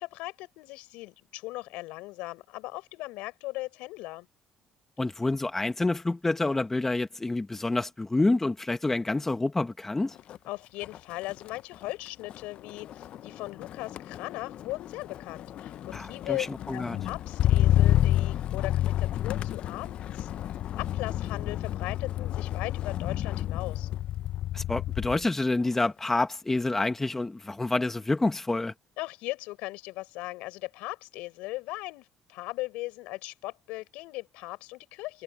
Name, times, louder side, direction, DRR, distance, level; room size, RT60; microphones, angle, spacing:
voice 1, 0.0-4.3 10.5-16.5 16.7-20.3 20.8-23.9 29.0-35.2, left 20 dB, 80° left, 6.8 m, -38 dB
voice 2, 5.0-10.1 15.9-16.4 16.7-17.0 24.5-28.7, left 2 dB, 15° left, 1.6 m, -28 dB
Motor vehicle (road), 10.2-10.5 10.8-25.3 25.6-26.1, left 12 dB, 60° left, 0.8 m, -29 dB
supercardioid pair, 75°, 2 cm